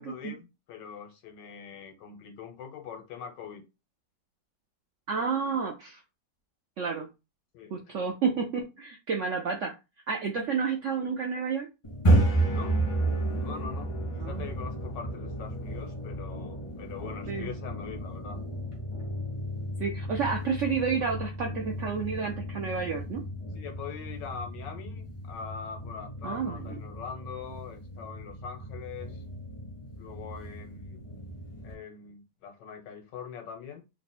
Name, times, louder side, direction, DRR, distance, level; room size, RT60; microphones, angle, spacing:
voice 1, 0.0-3.6 7.5-8.0 11.0-11.1 12.5-12.9 13.3-18.4 23.5-29.2 29.9-31.1 31.6-33.8, left 6 dB, 85° left, 4 dB, 1.5 m, -43 dB
voice 2, 5.1-6.0 6.8-7.1 7.7-9.7 10.1-11.7 12.1-12.2 14.2-14.5 17.3-17.5 19.8-23.2 26.2-26.8, right 5 dB, 75° right, 2 dB, 0.7 m, -30 dB
sound 1, 11.8-31.7, right 1 dB, 25° left, 0.7 m, -32 dB
3.2 x 2.2 x 4.2 m, 0.26 s
omnidirectional pair, 1.9 m